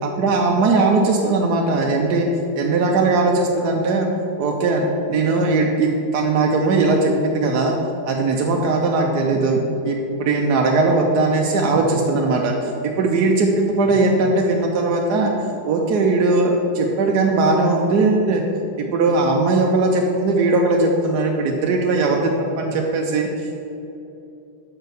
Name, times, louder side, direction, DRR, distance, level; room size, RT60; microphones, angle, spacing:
voice 1, 0.0-2.3 2.6-4.1 4.4-7.7 8.1-9.6 9.8-15.3 15.6-18.4 18.8-22.3 22.6-23.6, right 3 dB, 70° right, 0 dB, 1.1 m, -19 dB
6.1 x 5.6 x 6.7 m, 2.8 s
omnidirectional pair, 2.0 m